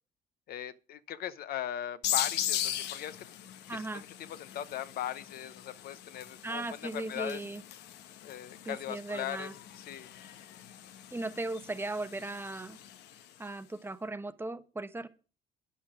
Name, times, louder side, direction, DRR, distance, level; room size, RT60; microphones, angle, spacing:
voice 1, 0.5-3.2 3.7-7.4 8.2-9.5 9.8-10.1, left 11 dB, 65° left, 0.9 m, -39 dB
sound 1, 2.0-13.4, left 11 dB, 80° left, 1.0 m, -39 dB
voice 2, 3.7-4.0 6.4-7.6 8.6-9.5 11.1-12.8 13.4-15.1, right 2 dB, 15° right, 0.8 m, -37 dB
9.3 x 8.3 x 5.1 m
cardioid pair, 110°, 17 cm